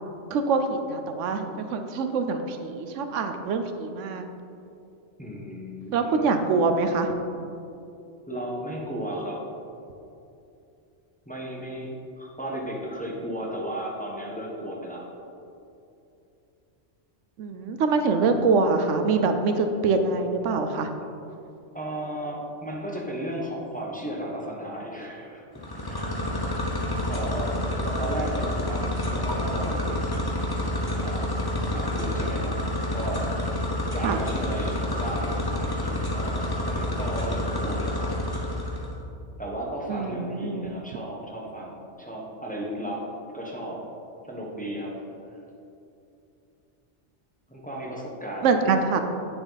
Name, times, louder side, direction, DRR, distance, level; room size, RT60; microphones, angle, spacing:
voice 1, 0.3-4.2 5.9-7.1 17.4-20.9 34.0-34.2 39.9-40.7 48.4-49.0, right 4 dB, 85° right, 7 dB, 1.0 m, -24 dB
voice 2, 5.2-6.4 8.3-9.5 11.3-15.0 18.2-18.5 21.7-26.6 27.1-30.5 31.0-32.6 32.9-33.3 33.9-38.1 39.4-43.1 43.3-43.8 44.3-44.9 47.5-48.7, right 1 dB, 5° left, -3 dB, 1.1 m, -35 dB
sound 1, 25.5-38.9, left 1 dB, 25° left, 0.7 m, -28 dB
8.8 x 7.0 x 4.1 m, 2.7 s
omnidirectional pair, 1.2 m